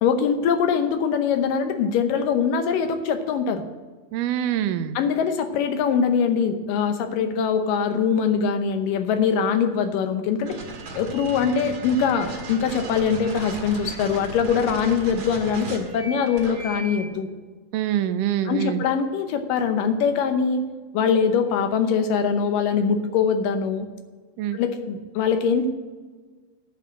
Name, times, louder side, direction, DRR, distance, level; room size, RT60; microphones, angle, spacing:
voice 1, 0.0-3.6 5.0-10.6 10.9-17.3 18.5-20.6 20.9-23.9 24.5-25.7, left 6 dB, 85° left, 8 dB, 2.5 m, -22 dB
voice 2, 4.1-5.0 17.7-18.8 24.4-24.6, right 11 dB, 80° right, 11 dB, 2.1 m, -25 dB
sound 1, 10.4-17.1, right 2 dB, 40° right, 2.1 m, -36 dB
9.1 x 6.8 x 8.4 m, 1.4 s
omnidirectional pair, 3.8 m